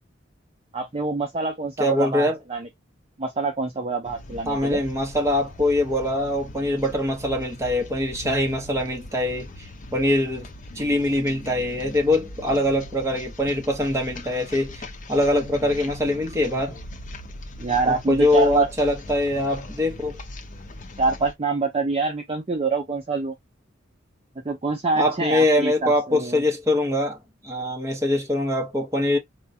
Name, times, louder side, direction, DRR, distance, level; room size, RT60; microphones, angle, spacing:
voice 1, 0.7-2.7 3.2-4.8 17.6-18.7 21.0-23.3 24.4-26.4, right 3 dB, 30° right, 0.5 m, -25 dB
voice 2, 1.8-2.4 4.4-10.5 10.7-16.8 17.9-20.2 25.0-27.2 27.4-29.2, left 1 dB, 15° right, 0.9 m, -23 dB
sound 1, 4.0-21.3, left 1 dB, 45° left, 0.6 m, -40 dB
4.4 x 2.3 x 2.7 m
head